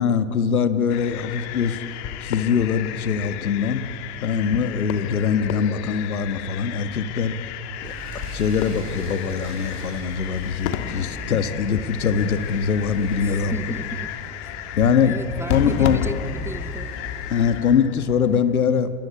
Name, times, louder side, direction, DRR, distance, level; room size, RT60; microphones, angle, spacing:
voice 1, 0.0-1.8 2.2-3.8 4.2-7.3 7.8-7.9 8.3-13.6 14.7-15.2 15.5-16.0 17.3-18.9, left 6 dB, 85° left, 11 dB, 1.8 m, -22 dB
sound 1, 0.9-18.6, left 10 dB, 50° left, 2.0 m, -33 dB
sound 2, 7.8-17.6, right 2 dB, 30° right, 5.9 m, -39 dB
voice 2, 13.2-14.1 15.0-16.9, right 2 dB, 5° right, 13 dB, 0.7 m, -34 dB
28.5 x 23.5 x 8.4 m, 2.6 s
hypercardioid pair, 110°, 42 cm